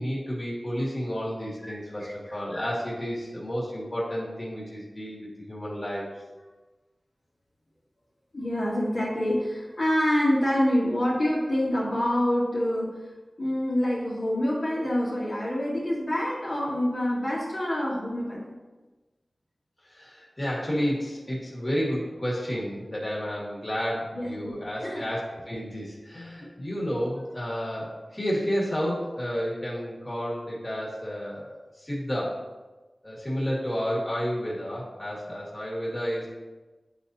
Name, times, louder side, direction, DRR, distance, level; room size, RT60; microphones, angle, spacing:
voice 1, 0.0-6.1 19.8-32.4 33.0-36.3, equal, 30° left, -5 dB, 1.9 m, -31 dB
voice 2, 1.6-2.7 8.3-12.9 13.4-18.5 24.1-24.5 24.8-25.0, left 1 dB, 55° left, -8 dB, 1.8 m, -26 dB
9.7 x 4.1 x 2.7 m, 1.2 s
wide cardioid pair, 75°, 0 cm